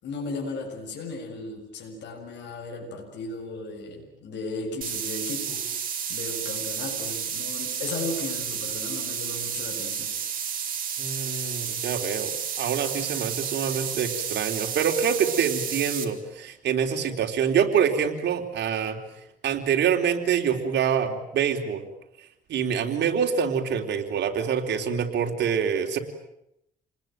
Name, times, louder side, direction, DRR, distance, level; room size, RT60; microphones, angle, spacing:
voice 1, 0.0-10.2, left 3 dB, 80° left, 1 dB, 7.0 m, -36 dB
sound 1, 4.8-16.0, right 8 dB, 50° right, 4.1 m, -31 dB
voice 2, 11.0-19.0 19.4-21.9 22.5-26.0, right 7 dB, 75° right, 3 dB, 3.9 m, -26 dB
29.0 x 20.5 x 9.2 m, 0.81 s
cardioid pair, 105°, 18 cm